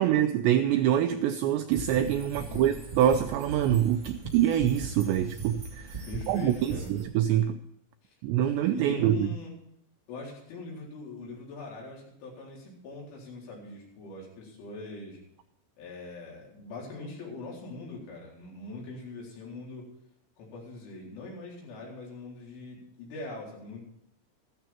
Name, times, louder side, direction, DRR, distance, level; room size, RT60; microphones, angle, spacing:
voice 1, 0.0-7.6 8.2-9.3, right 11 dB, 85° right, 8 dB, 2.5 m, -25 dB
sound 1, 1.7-7.0, right 4 dB, 20° right, 1.1 m, -39 dB
voice 2, 2.4-2.8 6.1-6.9 8.0-8.1 8.7-9.6 10.1-15.2 15.8-19.9 20.4-23.8, left 3 dB, 75° left, -3 dB, 6.5 m, -42 dB
14.5 x 13.0 x 4.4 m, 0.74 s
omnidirectional pair, 5.7 m